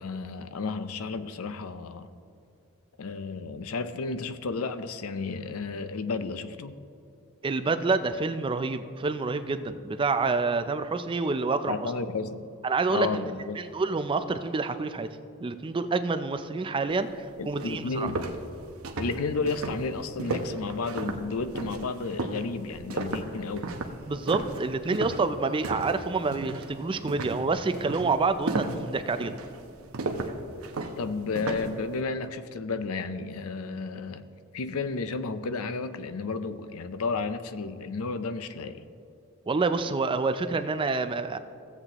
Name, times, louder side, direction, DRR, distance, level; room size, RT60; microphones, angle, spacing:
voice 1, 0.0-2.1 3.0-6.7 11.7-12.4 12.9-13.6 17.4-18.2 19.0-23.7 31.0-34.3 34.5-38.8, left 4 dB, 70° left, 11 dB, 0.5 m, -32 dB
voice 2, 7.4-11.9 12.6-15.1 15.4-18.1 24.1-29.3 39.5-41.4, right 4 dB, 25° right, 10 dB, 0.4 m, -28 dB
sound 1, 17.1-17.2 17.6-26.0 26.3-26.7 27.1-31.8, right 2 dB, 70° right, 0.8 m, -34 dB
16.0 x 7.9 x 2.9 m, 2.6 s
head